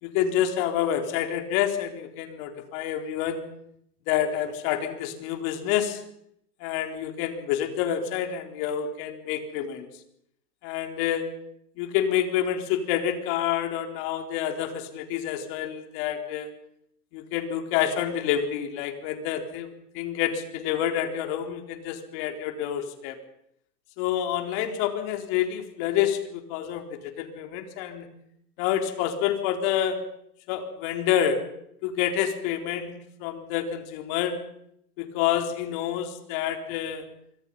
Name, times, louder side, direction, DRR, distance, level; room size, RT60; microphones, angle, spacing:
voice 1, 0.0-3.4 4.1-6.0 6.6-9.9 10.6-11.2 11.8-16.5 17.1-19.7 19.9-23.2 24.0-26.8 27.2-28.1 28.6-30.0 30.5-31.4 31.8-32.9 33.2-34.4 35.0-37.0, left 10 dB, 50° left, 5 dB, 4.2 m, -28 dB
26.5 x 24.5 x 5.6 m, 0.73 s
hypercardioid pair, 110°, 47 cm